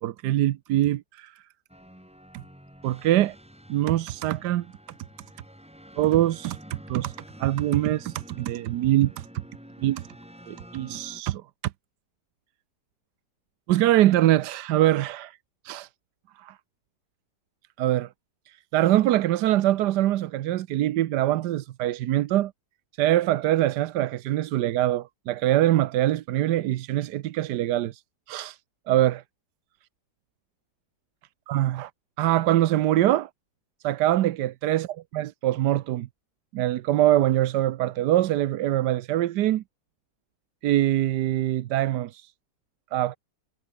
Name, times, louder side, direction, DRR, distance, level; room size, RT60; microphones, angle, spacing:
voice 1, 0.0-1.4 2.3-2.4 2.8-3.3 3.7-4.7 6.0-9.3 9.8-10.0 10.5-11.4 13.7-15.4 15.6-15.9 16.4-16.5 17.8-18.1 18.5-22.5 23.0-28.0 28.3-28.6 28.9-29.2 31.5-31.9 32.2-33.3 33.8-34.9 35.1-36.1 36.5-39.6 40.6-42.3 42.9-43.2, right 14 dB, 90° right, 1.3 m, -23 dB
sound 1, 1.7-11.2, equal, 5° right, 3.1 m, -48 dB
omnidirectional pair, 1.7 m